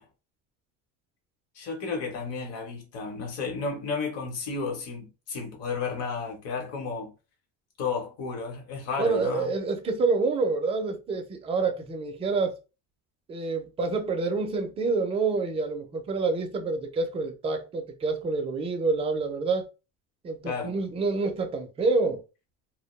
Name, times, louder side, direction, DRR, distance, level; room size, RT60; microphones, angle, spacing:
voice 1, 1.5-7.1 7.8-9.5 20.4-20.8, left 4 dB, 45° left, 0.9 m, -32 dB
voice 2, 9.0-12.5 13.3-19.6 20.2-22.2, right 3 dB, 20° right, 0.4 m, -27 dB
2.2 x 2.1 x 3.0 m
cardioid pair, 145°, 33 cm